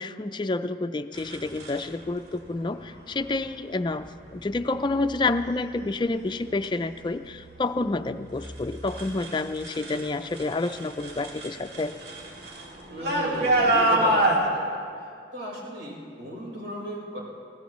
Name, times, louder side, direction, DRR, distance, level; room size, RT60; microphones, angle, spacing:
voice 1, 0.0-4.1 4.3-11.9, left 3 dB, 25° left, 9 dB, 0.4 m, -29 dB
sound 1, 1.2-1.8 3.0-3.3 3.9-4.3 4.9-5.4 5.8-10.1 10.3-14.4, right 1 dB, 60° right, 2.3 m, -28 dB
voice 2, 12.9-14.8 15.3-17.2, equal, 85° right, -4 dB, 4.6 m, -36 dB
20.5 x 17.0 x 3.1 m, 2.2 s
head